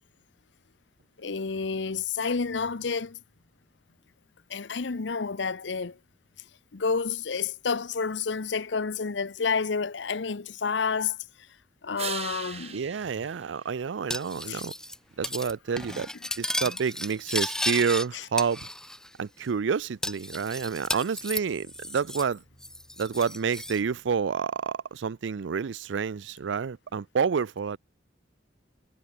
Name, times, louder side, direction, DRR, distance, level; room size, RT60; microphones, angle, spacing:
voice 1, 1.2-3.2 4.5-6.0 6.7-11.2 11.8-12.8 14.5-14.6 18.1-18.2, left 5 dB, 70° left, 0.8 m, -29 dB
sound 1, 12.0-14.5 20.3-24.3, right 7 dB, 35° right, 2.4 m, -44 dB
voice 2, 12.7-14.7 15.2-16.1 16.4-18.7 19.2-22.4 23.0-27.8, right 6 dB, 80° right, 0.5 m, -29 dB
Cutlery silverware, 14.1-15.0 15.2-15.5 15.8-18.1 18.4-19.1 19.4-19.5 20.0-22.3 22.6-23.8, left 1 dB, 5° left, 1.8 m, -34 dB
head